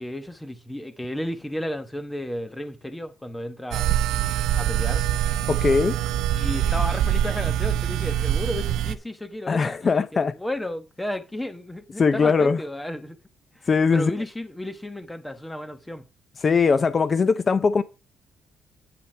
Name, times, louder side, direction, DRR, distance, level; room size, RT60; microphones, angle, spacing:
voice 1, 0.0-3.9 4.6-5.1 6.4-13.2 13.5-16.1, left 1 dB, 10° left, 1.1 m, -33 dB
sound 1, 3.7-9.0, right 10 dB, 90° right, 0.6 m, -24 dB
voice 2, 5.5-6.0 9.5-10.4 12.0-12.6 13.7-14.1 16.4-17.8, left 5 dB, 40° left, 0.5 m, -20 dB
8.6 x 8.3 x 3.3 m
cardioid pair, 90°, 0 cm